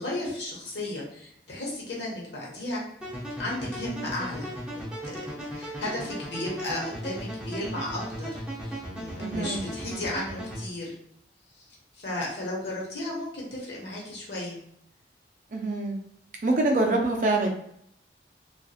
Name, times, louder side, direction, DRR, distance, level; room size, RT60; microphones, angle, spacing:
voice 1, 0.0-2.8 3.4-5.2 5.5-10.9 11.5-11.7 11.9-14.6, left 1 dB, 85° left, -3 dB, 1.0 m, -34 dB
sound 1, 3.0-10.6, equal, 5° right, 0.6 m, -36 dB
voice 2, 9.2-9.6 15.5-16.0 16.4-17.5, right 2 dB, 45° right, 1 dB, 0.5 m, -25 dB
2.7 x 2.4 x 2.4 m, 0.74 s
head